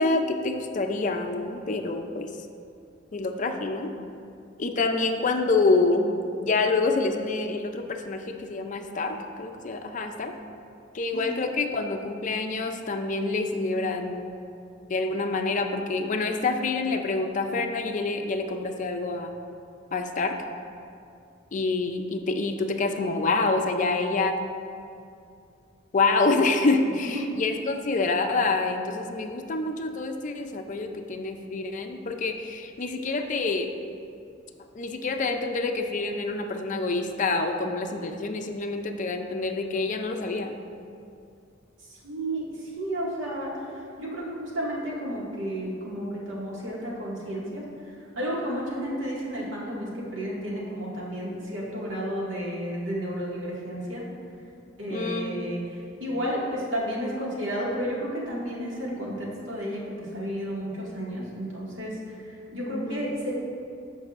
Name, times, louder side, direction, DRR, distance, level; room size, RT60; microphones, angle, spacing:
voice 1, 0.0-2.3 3.1-3.9 4.6-10.3 10.9-14.4 14.9-19.3 19.9-20.4 21.5-24.4 25.9-33.7 34.7-40.6 54.9-55.5 62.7-63.0, left 3 dB, 40° left, 5 dB, 0.5 m, -27 dB
voice 2, 41.9-43.7 44.0-47.6 48.2-54.0 54.8-63.3, equal, 80° right, -5 dB, 1.9 m, -32 dB
14.5 x 5.4 x 2.5 m, 2.5 s
head